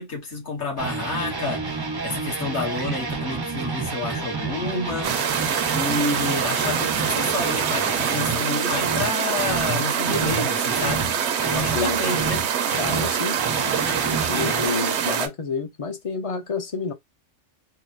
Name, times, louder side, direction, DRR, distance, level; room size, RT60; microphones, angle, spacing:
voice 1, 0.0-1.7 2.0-5.1 5.7-11.1 11.5-12.4, left 3 dB, 65° left, 1.6 m, -29 dB
sound 1, 0.8-8.4 8.7-9.1 9.4-12.5 12.7-14.7, right 4 dB, 35° right, 0.3 m, -29 dB
sound 2, 5.0-15.3, right 8 dB, 70° right, 0.8 m, -25 dB
voice 2, 12.7-13.4 14.1-16.9, left 4 dB, 40° left, 0.5 m, -29 dB
3.6 x 2.1 x 2.5 m
omnidirectional pair, 1.3 m